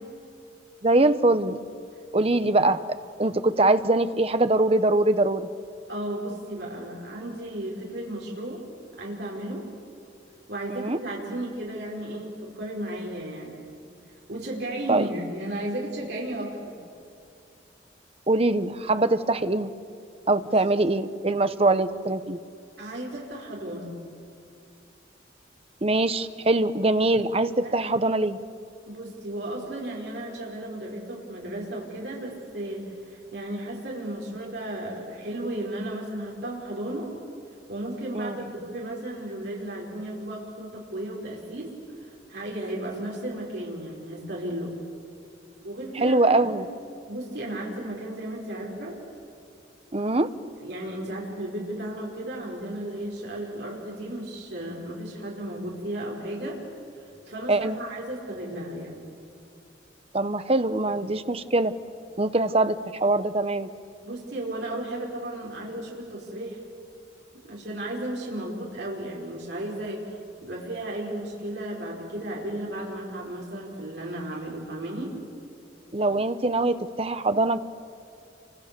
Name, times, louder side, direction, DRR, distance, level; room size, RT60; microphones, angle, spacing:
voice 1, 0.8-1.6 2.1-2.8 3.2-5.5 10.7-11.0 14.9-15.1 18.3-19.7 20.3-22.4 25.8-28.4 38.1-38.5 46.0-46.7 49.9-50.3 57.5-57.8 60.1-61.7 62.2-63.7 75.9-77.6, right 2 dB, 30° right, 11 dB, 0.9 m, -23 dB
voice 2, 5.9-8.6 9.0-9.7 10.5-13.6 14.3-16.7 20.5-20.6 22.8-23.9 27.6-27.8 28.9-37.1 37.7-44.8 45.6-46.2 46.5-46.6 47.1-48.9 50.6-56.6 57.3-59.0 64.0-66.6 67.4-70.1 70.4-75.1, right 1 dB, 60° right, -3 dB, 5.1 m, -34 dB
29.5 x 25.0 x 6.9 m, 2.5 s
head